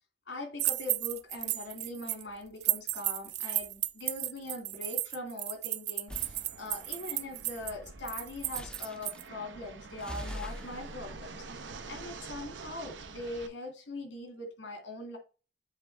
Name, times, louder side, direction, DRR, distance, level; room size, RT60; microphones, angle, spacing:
voice 1, 0.3-15.2, left 2 dB, 85° left, 2.2 m, -42 dB
sound 1, 0.6-2.2 2.6-9.2, right 16 dB, 60° right, 0.4 m, -33 dB
sound 2, 6.1-6.4 8.5-9.3 10.0-12.6, left 1 dB, 5° left, 0.4 m, -44 dB
Fixed-wing aircraft airplane, 6.1-13.5, right 4 dB, 90° right, 0.8 m, -47 dB
7.4 x 3.7 x 4.5 m
head